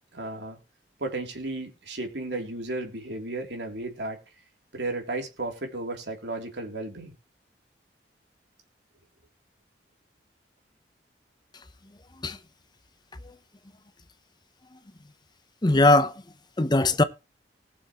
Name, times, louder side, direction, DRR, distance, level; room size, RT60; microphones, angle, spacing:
voice 1, 0.1-0.6 1.0-4.2 4.7-7.1, right 2 dB, 80° right, 3.2 m, -34 dB
voice 2, 15.6-16.2 16.6-17.0, left 2 dB, 25° left, 0.8 m, -20 dB
19.5 x 7.2 x 3.1 m
head